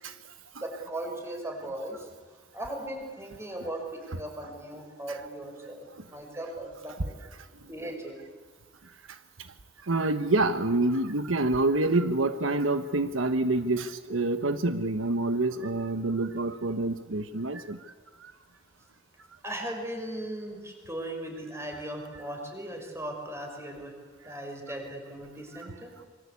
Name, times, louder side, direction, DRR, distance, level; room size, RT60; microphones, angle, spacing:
voice 1, 0.6-2.1 2.5-7.2 7.7-8.2 19.4-23.9 24.2-25.9, right 1 dB, 15° right, 2 dB, 5.7 m, -38 dB
voice 2, 9.9-17.8 18.2-18.3 24.3-24.4, right 2 dB, 80° right, 9 dB, 1.2 m, -27 dB
26.5 x 24.0 x 8.5 m, 1.5 s
head